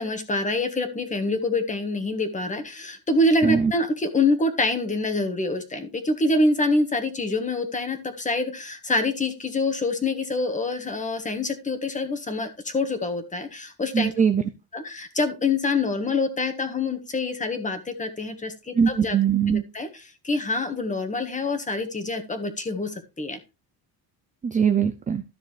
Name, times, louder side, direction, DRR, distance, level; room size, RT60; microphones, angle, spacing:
voice 1, 0.0-14.1 14.7-19.2 19.7-23.4, left 2 dB, 15° left, 7 dB, 1.5 m, -26 dB
voice 2, 13.9-14.4 18.7-19.6 24.4-25.2, right 7 dB, 20° right, 9 dB, 0.4 m, -21 dB
13.0 x 6.6 x 3.3 m, 0.28 s
cardioid pair, 170°, 43 cm